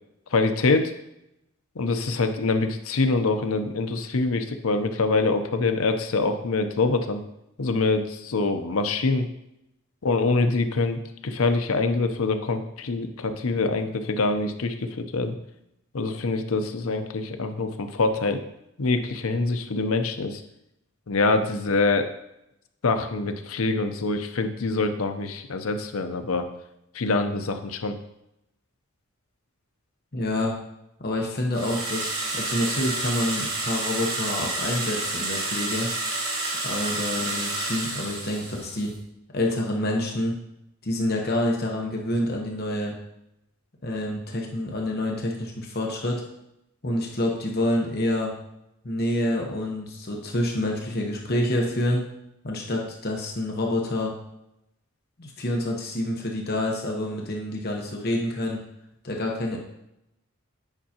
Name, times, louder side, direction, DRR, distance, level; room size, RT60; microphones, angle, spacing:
voice 1, 0.3-0.9 1.8-7.2 7.6-9.3 10.0-15.3 15.9-18.4 18.8-20.4 21.1-22.1 22.8-26.5 26.9-28.0, left 3 dB, 85° left, 7 dB, 0.7 m, -25 dB
voice 2, 30.1-30.6 31.0-35.9 36.6-38.9 39.3-40.3 40.8-42.9 43.8-46.2 46.8-48.3 48.8-52.1 52.4-54.1 55.2-58.6 59.0-59.6, left 1 dB, 45° left, 0 dB, 1.0 m, -27 dB
sound 1, 31.5-38.9, right 2 dB, 80° right, 2.0 m, -29 dB
9.1 x 5.5 x 2.9 m, 0.84 s
head